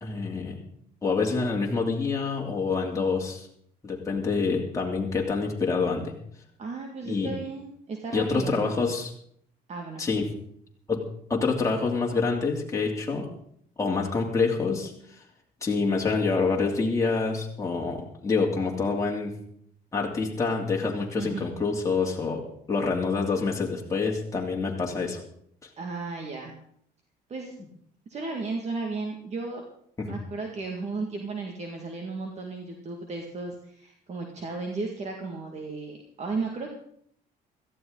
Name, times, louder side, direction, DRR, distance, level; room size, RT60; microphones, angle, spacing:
voice 1, 0.0-0.6 1.0-3.5 3.8-6.1 7.0-7.3 8.1-9.1 10.0-10.3 10.9-11.0 11.3-13.3 13.8-14.9 15.6-19.3 19.9-22.4 22.7-25.2 30.0-30.2, left 4 dB, 20° left, -2 dB, 2.9 m, -26 dB
voice 2, 6.6-8.8 9.7-10.0 21.2-21.5 25.8-26.6 27.3-27.5 28.1-29.6 30.1-36.7, right 3 dB, 40° right, 2 dB, 2.1 m, -34 dB
17.0 x 14.0 x 4.0 m, 0.65 s
cardioid pair, 110°, 17 cm